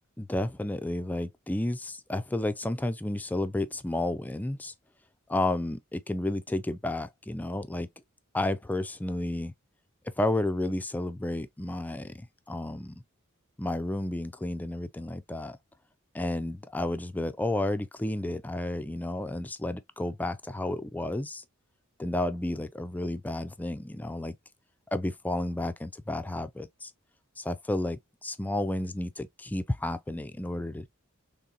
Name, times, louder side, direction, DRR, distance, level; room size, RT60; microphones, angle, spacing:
voice 1, 0.2-4.7 5.3-7.9 8.3-9.5 10.0-13.0 13.6-15.6 16.1-21.4 22.0-24.3 24.9-26.9 27.4-30.9, left 1 dB, 10° left, 0.3 m, -31 dB
3.8 x 3.4 x 2.8 m
head